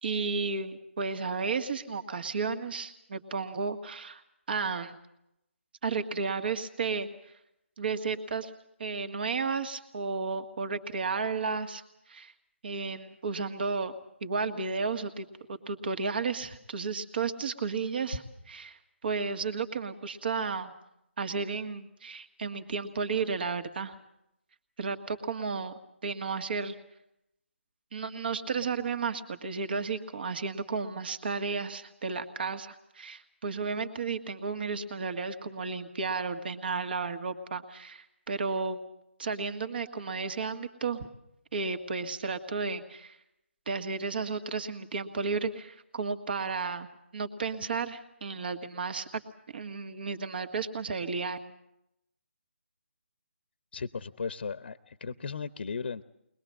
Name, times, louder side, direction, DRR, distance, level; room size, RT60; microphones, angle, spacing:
voice 1, 0.0-4.2 4.5-5.0 5.8-7.1 7.8-8.5 8.8-12.3 12.6-20.7 21.2-23.9 24.8-25.7 26.0-26.7 27.9-38.8 39.2-41.1 41.5-43.2 43.6-46.9 47.1-49.2 49.5-51.4, right 4 dB, 50° right, 8 dB, 1.8 m, -33 dB
voice 2, 53.7-56.0, left 5 dB, 55° left, 13 dB, 0.8 m, -36 dB
22.5 x 20.5 x 7.5 m, 0.81 s
figure-of-eight pair, 155°, 7 cm